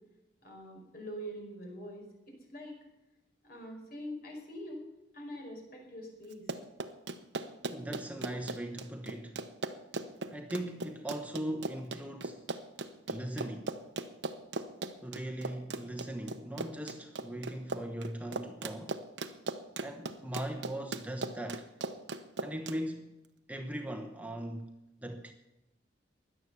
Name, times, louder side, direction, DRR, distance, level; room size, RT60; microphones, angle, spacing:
voice 1, 0.4-2.8 3.4-4.8 5.1-6.4, equal, 55° left, 5.1 m, -44 dB
Run, 6.3-22.8, right 3 dB, 80° right, 1.0 m, -38 dB
voice 2, 7.7-9.4 10.3-12.4 13.1-13.7 15.0-19.0 19.8-21.7 22.4-23.1 23.5-24.7 25.0-25.3, right 1 dB, 10° right, 1.0 m, -39 dB
16.5 x 11.0 x 7.0 m
head